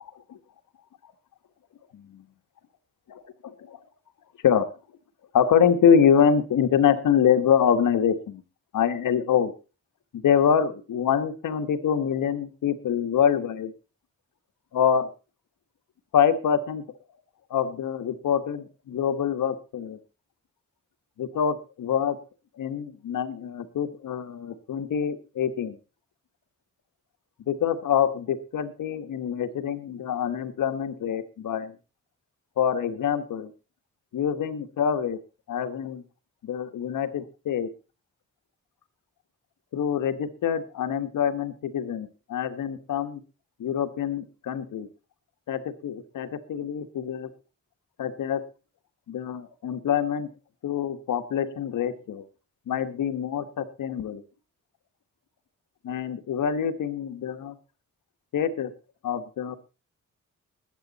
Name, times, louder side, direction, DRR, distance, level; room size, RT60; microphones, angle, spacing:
voice 1, 3.1-3.8 4.4-4.7 5.3-8.4 8.7-9.5 10.1-13.7 14.7-15.1 16.1-16.8 17.5-20.0 21.2-22.2 22.6-25.8 27.5-31.8 32.6-33.5 34.1-35.2 35.5-36.0 36.4-37.7 39.7-43.2 43.6-44.9 45.5-47.3 48.0-48.4 49.1-50.3 50.6-52.2 52.7-54.2 55.8-57.5 58.3-58.7 59.0-59.6, left 8 dB, 80° left, 9 dB, 1.4 m, -25 dB
20.5 x 8.2 x 4.1 m, 0.33 s
cardioid pair, 95°, 31 cm